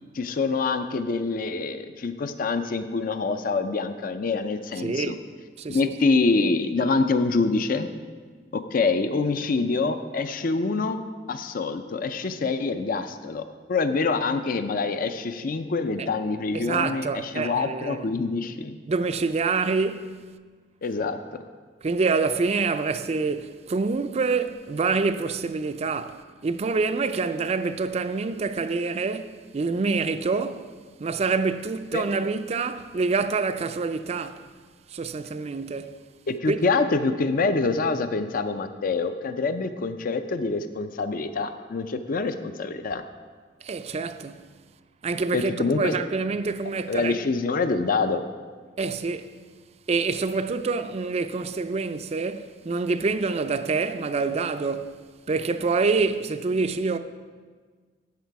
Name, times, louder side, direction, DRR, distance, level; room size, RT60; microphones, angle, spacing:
voice 1, 0.1-5.2 5.7-7.9 8.5-13.4 13.7-18.8 20.8-21.2 31.9-32.1 36.3-43.0 45.3-45.9 46.9-48.2, left 3 dB, 50° left, 0.5 m, -26 dB
voice 2, 4.8-5.2 5.6-5.8 16.0-16.1 16.5-18.0 18.9-20.2 21.8-30.7 31.0-34.5 34.9-36.0 36.5-36.6 43.6-44.5 45.0-47.1 48.8-49.4 49.9-55.0 55.3-57.0, right 4 dB, 35° right, 0.4 m, -26 dB
10.5 x 7.5 x 4.6 m
head